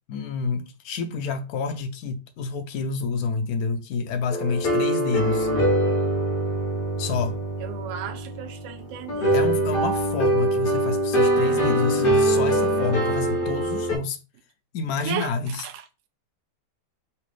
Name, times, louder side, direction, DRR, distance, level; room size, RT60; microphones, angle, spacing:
voice 1, 0.1-5.5 7.0-7.4 9.3-14.2 14.7-15.6, left 4 dB, 70° left, 0.9 m, -28 dB
sound 1, 4.3-14.0, right 1 dB, 45° left, 0.7 m, -23 dB
voice 2, 7.6-9.4 15.0-15.3 15.6-15.8, right 9 dB, 70° right, 0.7 m, -34 dB
3.3 x 2.8 x 3.2 m
omnidirectional pair, 1.8 m